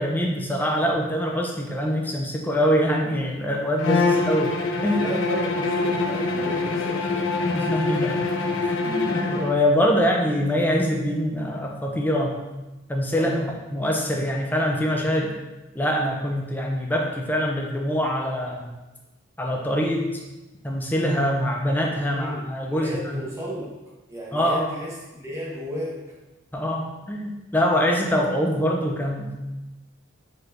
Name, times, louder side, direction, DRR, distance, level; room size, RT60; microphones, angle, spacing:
voice 1, 0.0-4.5 4.8-5.1 7.5-8.2 8.6-12.5 12.9-15.4 15.7-18.7 19.4-20.2 20.6-23.2 24.3-24.7 26.5-29.3, equal, 10° left, 0 dB, 0.4 m, -24 dB
Bowed string instrument, 3.8-9.6, left 3 dB, 70° left, 0.4 m, -25 dB
voice 2, 4.9-7.4 13.1-13.5 22.1-23.7 24.1-26.0, equal, 15° right, -6 dB, 0.9 m, -34 dB
4.5 x 4.3 x 2.5 m, 1.1 s
head